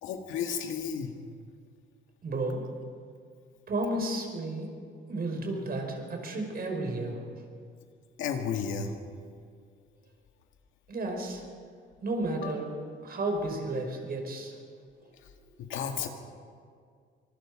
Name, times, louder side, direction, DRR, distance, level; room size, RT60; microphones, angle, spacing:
voice 1, 0.0-1.1 8.2-8.9 12.4-12.5 15.6-16.1, left 7 dB, 85° left, 4 dB, 2.1 m, -32 dB
voice 2, 2.2-2.7 3.7-4.8 5.1-7.4 10.9-11.4 12.0-12.7 13.0-14.6, right 2 dB, 50° right, 3 dB, 5.2 m, -32 dB
25.0 x 20.5 x 5.1 m, 2.2 s
cardioid pair, 90°, 20 cm